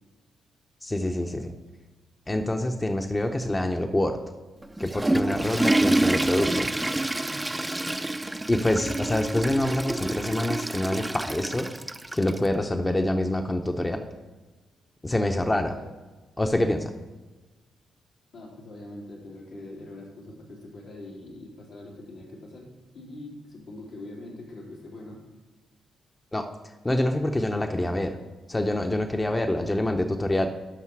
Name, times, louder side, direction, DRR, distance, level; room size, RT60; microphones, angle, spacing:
voice 1, 0.8-1.5 2.3-4.2 4.8-6.8 8.5-11.7 12.1-14.1 15.0-15.7 16.4-16.9 26.3-26.5 26.8-28.1 28.5-30.5, left 1 dB, 20° left, 5 dB, 0.8 m, -26 dB
Water / Toilet flush, 4.6-12.5, right 1 dB, 15° right, 0.5 m, -27 dB
voice 2, 18.3-22.7 22.9-25.2 27.6-27.9, left 1 dB, 80° left, -5 dB, 3.4 m, -43 dB
11.5 x 5.7 x 4.7 m, 1.3 s
supercardioid pair, 60°, 0 cm